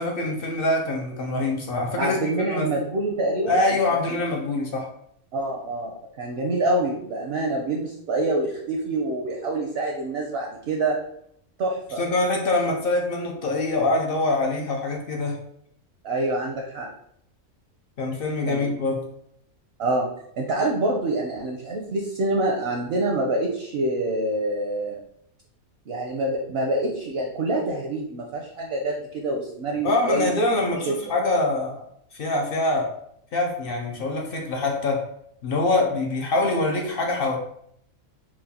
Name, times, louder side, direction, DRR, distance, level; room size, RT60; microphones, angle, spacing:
voice 1, 0.0-2.7 3.5-4.9 12.0-15.4 18.0-19.0 29.8-31.8 32.1-32.9 33.3-35.0 35.4-37.4, left 2 dB, 65° left, 1 dB, 0.5 m, -24 dB
voice 2, 2.0-3.6 5.3-11.0 11.6-12.0 16.0-16.9 18.5-18.7 19.8-20.1 20.4-25.0 25.9-30.3 30.8-31.0, right 2 dB, 65° right, 0 dB, 0.6 m, -26 dB
4.4 x 2.2 x 2.7 m, 0.70 s
omnidirectional pair, 1.5 m